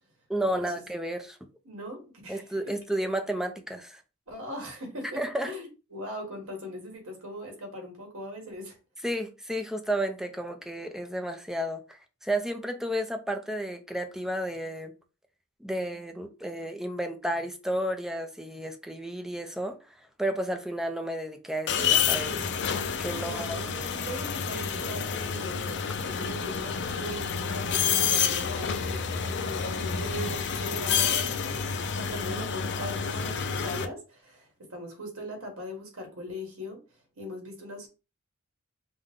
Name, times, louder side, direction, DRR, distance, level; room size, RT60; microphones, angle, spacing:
voice 1, 0.3-1.4 2.3-4.0 5.2-5.5 9.0-14.9 15.6-19.8 20.2-22.4 23.0-23.6, right 1 dB, ahead, 0.5 m, -32 dB
voice 2, 1.6-2.7 4.3-8.8 23.2-36.8 37.2-37.9, equal, 80° right, 1.7 m, -40 dB
sound 1, 21.7-33.8, left 7 dB, 55° left, 0.5 m, -29 dB
5.2 x 2.2 x 3.6 m
head